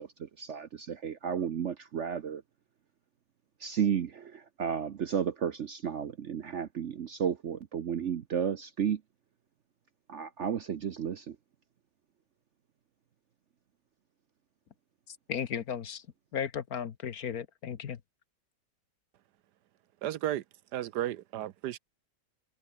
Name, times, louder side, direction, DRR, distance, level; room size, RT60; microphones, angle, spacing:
voice 1, 0.0-2.4 3.6-9.0 10.1-11.4, right 8 dB, 55° right, 0.9 m, -33 dB
voice 2, 15.1-16.0 16.3-18.0, left 8 dB, 60° left, 1.5 m, -35 dB
voice 3, 20.0-20.4 20.7-21.8, right 12 dB, 70° right, 1.2 m, -33 dB
omnidirectional pair, 1.9 m